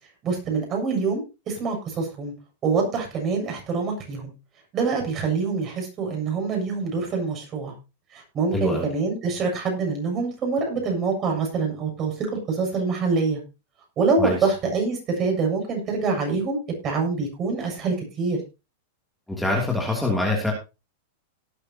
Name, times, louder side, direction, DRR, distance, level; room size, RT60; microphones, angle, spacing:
voice 1, 0.2-2.3 2.6-4.3 4.7-7.7 8.1-13.4 14.0-18.4, right 4 dB, 30° right, 1 dB, 7.5 m, -25 dB
voice 2, 8.5-8.9 14.2-14.4 19.3-20.5, left 2 dB, 5° left, -2 dB, 3.0 m, -24 dB
18.5 x 9.9 x 3.0 m, 0.29 s
supercardioid pair, 140°, 0 cm